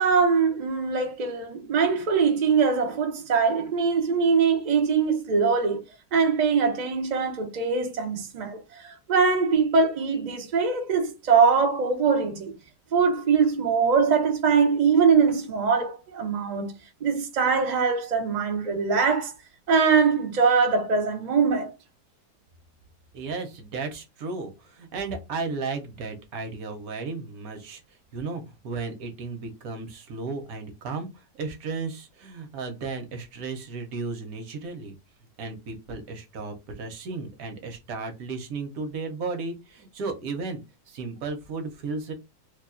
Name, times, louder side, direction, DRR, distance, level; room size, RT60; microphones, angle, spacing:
voice 1, 0.0-5.8 6.1-12.5 12.9-16.7 17.0-19.3 19.7-21.7, right 5 dB, 85° right, 0.4 m, -22 dB
voice 2, 23.1-27.8 28.1-35.0 35.4-40.6 40.9-42.1, right 4 dB, 60° right, 1.1 m, -34 dB
2.9 x 2.3 x 3.6 m
omnidirectional pair, 1.9 m